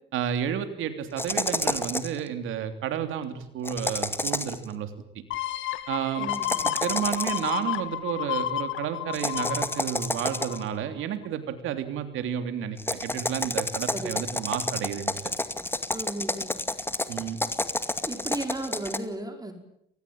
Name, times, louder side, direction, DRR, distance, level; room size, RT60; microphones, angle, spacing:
voice 1, 0.1-4.9 5.9-6.3 6.6-15.1 17.1-17.4, right 9 dB, 90° right, 9 dB, 3.2 m, -31 dB
sound 1, 1.2-2.2 3.6-4.6 6.3-7.6 9.1-10.7 12.8-19.0, left 2 dB, 10° left, 2.3 m, -30 dB
sound 2, 5.3-10.8 11.2-11.3, left 12 dB, 85° left, 1.8 m, -31 dB
voice 2, 6.2-6.7 13.9-14.2 15.9-16.6 18.1-19.5, right 2 dB, 20° right, 6 dB, 5.2 m, -35 dB
29.0 x 20.0 x 8.8 m, 0.74 s
cardioid pair, 90°, 20 cm